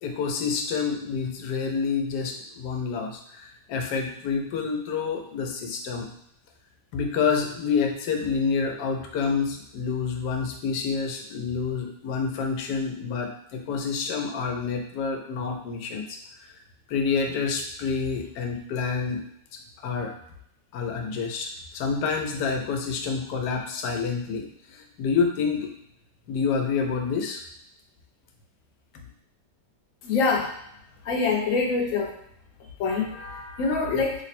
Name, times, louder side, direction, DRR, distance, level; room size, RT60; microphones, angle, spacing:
voice 1, 0.0-6.2 6.9-16.2 16.5-16.6 16.9-19.3 19.8-20.1 20.7-21.5 21.7-25.7 26.3-27.4, left 5 dB, 80° left, 3 dB, 1.2 m, -28 dB
voice 2, 30.0-30.5 31.0-32.1 32.8-34.2, left 4 dB, 65° left, 0 dB, 1.0 m, -25 dB
3.2 x 2.0 x 4.2 m, 0.75 s
omnidirectional pair, 1.8 m